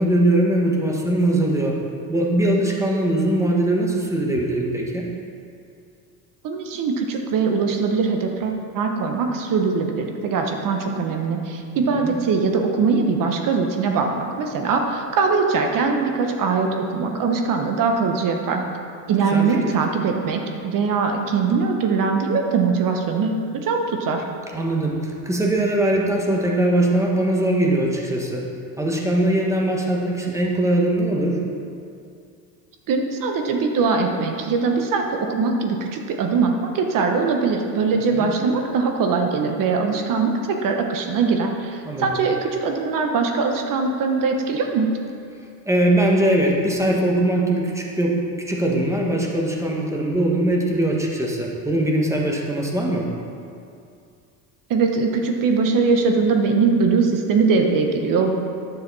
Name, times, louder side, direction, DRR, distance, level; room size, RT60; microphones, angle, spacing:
voice 1, 0.0-1.8 2.1-5.1 11.7-12.1 19.3-19.5 24.5-28.5 28.8-31.5 38.1-38.3 41.9-42.1 45.6-53.1, right 1 dB, 5° right, -1 dB, 1.4 m, -21 dB
voice 2, 6.4-18.6 19.1-24.2 32.9-44.9 54.7-58.3, right 4 dB, 45° right, 3 dB, 1.2 m, -21 dB
9.9 x 6.9 x 4.1 m, 2.5 s
supercardioid pair, 100°, 44 cm